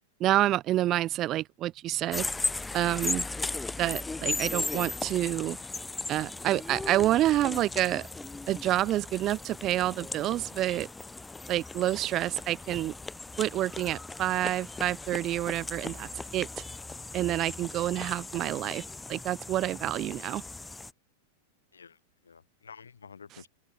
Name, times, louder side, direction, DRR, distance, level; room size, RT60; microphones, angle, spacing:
voice 1, 0.2-2.3 2.7-3.2 3.8-5.6 6.1-8.1 8.5-10.9 11.5-12.9 13.4-16.5 17.1-18.8 19.1-20.4, right 14 dB, 35° right, 1.5 m, -28 dB
sound 1, 2.1-20.9, left 3 dB, 10° left, 1.9 m, -37 dB
voice 2, 21.7-23.5, left 6 dB, 70° left, 5.2 m, -50 dB
open air
figure-of-eight pair, 90°, 0 cm